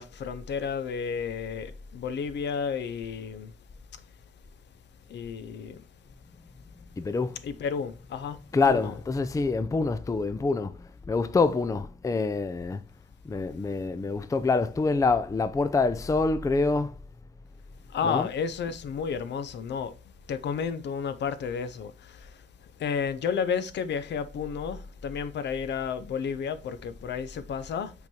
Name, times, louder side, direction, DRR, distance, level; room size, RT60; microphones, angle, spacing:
voice 1, 0.0-3.5 5.1-5.8 7.4-8.4 8.7-8.9 17.9-19.9 20.3-22.4 22.8-27.9, left 6 dB, 60° left, 0.7 m, -32 dB
voice 2, 7.0-7.4 8.5-12.8 13.2-17.0 18.0-18.3, left 4 dB, 15° left, 0.5 m, -26 dB
5.8 x 3.9 x 4.3 m
cardioid pair, 90°, 20 cm